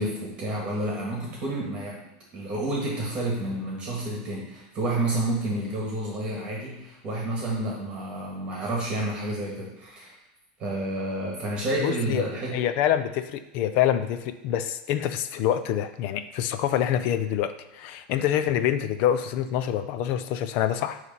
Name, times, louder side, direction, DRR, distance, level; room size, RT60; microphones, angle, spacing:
voice 1, 0.0-2.0 2.3-10.1 10.6-12.7, right 1 dB, 20° right, -3 dB, 1.7 m, -30 dB
voice 2, 11.8-12.2 12.5-21.0, left 10 dB, 40° left, 11 dB, 0.5 m, -26 dB
9.7 x 3.3 x 5.5 m, 0.97 s
supercardioid pair, 170°, 4 cm